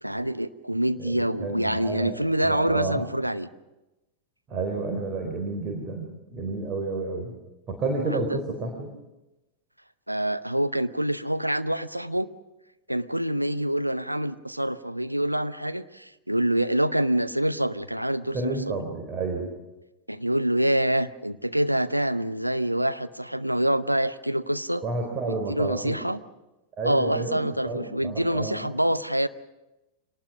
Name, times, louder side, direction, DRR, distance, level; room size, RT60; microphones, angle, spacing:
voice 1, 0.0-3.5 8.3-8.4 10.1-12.3 12.9-18.8 20.1-24.8 25.2-26.2 26.8-29.3, right 1 dB, 90° right, 11 dB, 0.7 m, -26 dB
voice 2, 1.0-3.0 4.5-7.3 7.7-9.0 18.3-19.5 24.8-26.0 26.8-27.4 27.6-28.7, right 3 dB, 30° right, 3 dB, 4.3 m, -31 dB
25.5 x 19.0 x 6.3 m, 1.0 s
figure-of-eight pair, 90°, 0 cm